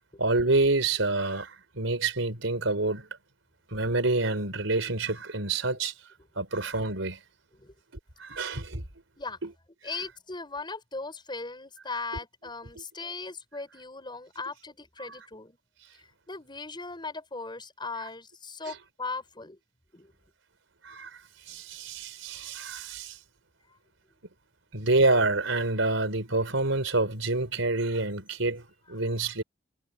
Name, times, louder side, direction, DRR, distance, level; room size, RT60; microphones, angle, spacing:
voice 1, 0.2-1.5 1.8-3.1 3.7-5.9 6.4-7.2 8.2-8.8 9.4-9.5 20.8-21.1 21.5-23.2 24.7-29.4, right 2 dB, 85° right, 4.0 m, -27 dB
voice 2, 9.8-15.6 15.9-19.6 19.9-20.1 28.9-29.0 29.2-29.4, left 3 dB, 25° left, 5.9 m, -38 dB
head